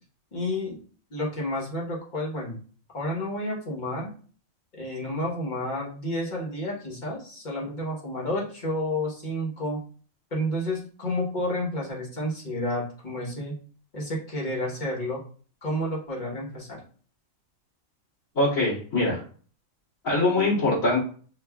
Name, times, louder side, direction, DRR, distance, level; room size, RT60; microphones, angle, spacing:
voice 1, 0.3-0.8 1.1-2.6 2.9-4.1 4.7-9.8 10.3-13.6 13.9-15.2 15.6-16.8, left 1 dB, 35° left, -3 dB, 1.3 m, -30 dB
voice 2, 18.3-19.2 20.0-21.0, left 2 dB, 85° left, -9 dB, 2.9 m, -23 dB
6.8 x 2.5 x 2.3 m, 0.43 s
omnidirectional pair, 1.4 m